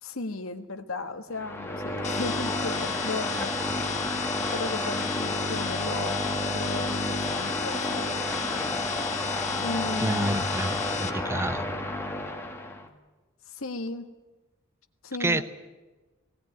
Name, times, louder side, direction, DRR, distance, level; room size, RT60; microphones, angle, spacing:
voice 1, 0.0-3.5 4.5-8.2 9.6-10.8 13.5-14.1 15.0-15.4, left 3 dB, 80° left, 1.6 m, -36 dB
sound 1, 1.3-12.9, left 1 dB, 10° left, 1.7 m, -31 dB
sound 2, 2.0-11.1, left 7 dB, 35° left, 1.4 m, -34 dB
voice 2, 10.0-11.7 15.2-15.4, right 2 dB, 10° right, 0.7 m, -28 dB
18.5 x 17.0 x 9.4 m
head